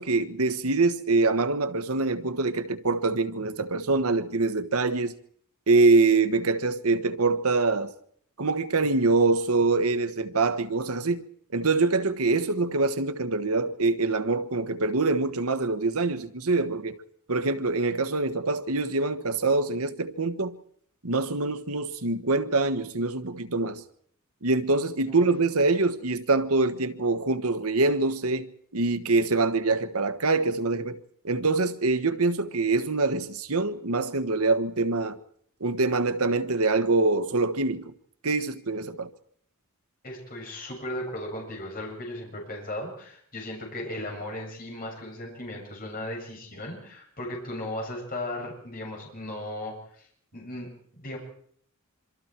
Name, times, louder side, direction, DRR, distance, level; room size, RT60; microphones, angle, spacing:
voice 1, 0.0-5.1 5.7-7.9 8.4-11.2 11.5-16.9 17.3-20.6 21.0-23.8 24.4-28.5 28.7-31.0 31.2-35.2 35.6-37.9 38.2-39.1, right 3 dB, 85° right, 1.4 m, -24 dB
voice 2, 40.0-50.1 50.3-51.2, left 1 dB, 40° left, 7.5 m, -36 dB
26.5 x 25.0 x 4.6 m
head